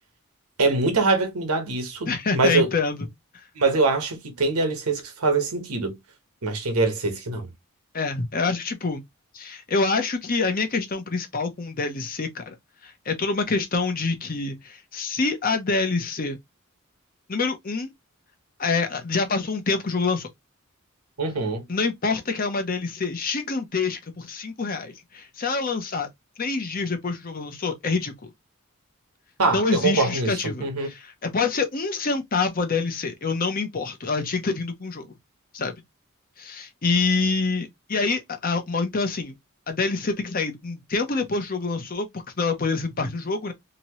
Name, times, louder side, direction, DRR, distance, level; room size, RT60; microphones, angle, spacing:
voice 1, 0.6-2.7 3.6-6.0 6.4-7.5 21.2-21.6 29.4-30.9, right 3 dB, 90° right, 1.2 m, -23 dB
voice 2, 2.1-3.1 3.3-3.4 7.9-9.0 9.3-12.5 12.8-16.4 17.3-17.9 18.6-20.3 21.7-26.1 26.4-28.3 29.5-35.1 35.5-35.8 36.4-39.3 39.7-43.5, left 4 dB, 40° left, 0.7 m, -26 dB
2.9 x 2.8 x 3.0 m
head